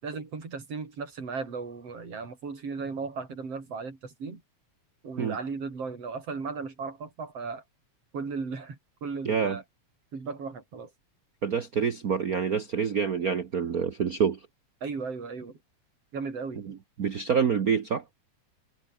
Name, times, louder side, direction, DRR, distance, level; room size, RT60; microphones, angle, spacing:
voice 1, 0.0-4.4 5.0-7.6 8.1-9.6 10.1-10.9 14.8-15.6 16.1-16.7, right 4 dB, 50° right, 5.5 m, -36 dB
voice 2, 9.2-9.6 11.4-14.4 16.6-18.0, right 6 dB, 80° right, 0.8 m, -27 dB
omnidirectional pair, 3.4 m